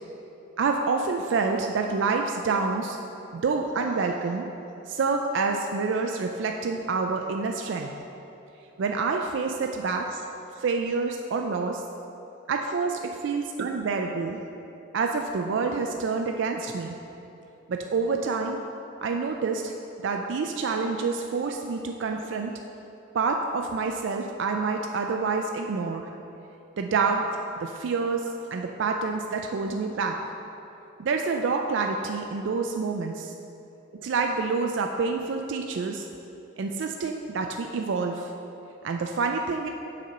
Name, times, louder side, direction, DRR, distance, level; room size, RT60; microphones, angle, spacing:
voice 1, 0.6-3.0 3.3-4.5 4.9-7.9 8.8-10.3 10.6-11.8 12.5-14.4 14.9-16.9 17.7-18.6 19.0-19.7 20.0-22.5 23.1-26.1 26.8-27.3 27.6-30.2 31.0-33.3 34.0-36.0 36.6-38.3 38.8-39.7, right 4 dB, 60° right, 3 dB, 0.3 m, -27 dB
6.6 x 4.2 x 6.3 m, 2.9 s
head